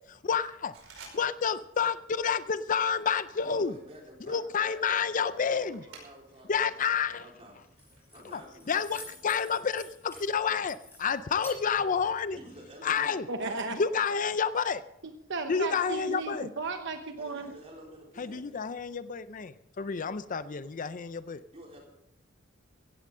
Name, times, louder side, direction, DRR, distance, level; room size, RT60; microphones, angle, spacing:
voice 1, 0.1-0.7 1.1-3.7 4.3-5.8 6.5-7.2 8.3-8.4 8.7-12.4 12.8-13.3 13.7-14.8 15.5-16.5 18.2-21.4, left 6 dB, 40° left, 14 dB, 0.5 m, -29 dB
sound 1, 0.7-1.7 1.9-2.3 2.8-6.5 6.9-8.4, right 4 dB, 90° right, 4.9 m, -55 dB
voice 2, 3.4-6.9 7.1-9.1 12.3-14.1 17.2-18.5 21.5-21.8, equal, 30° right, -1 dB, 4.2 m, -50 dB
Keys jangling, 7.5-12.6, left 1 dB, 10° left, 5.9 m, -51 dB
voice 3, 13.3-13.8 15.0-17.5, right 3 dB, 65° right, 6 dB, 1.0 m, -35 dB
16.0 x 16.0 x 3.7 m, 0.78 s
head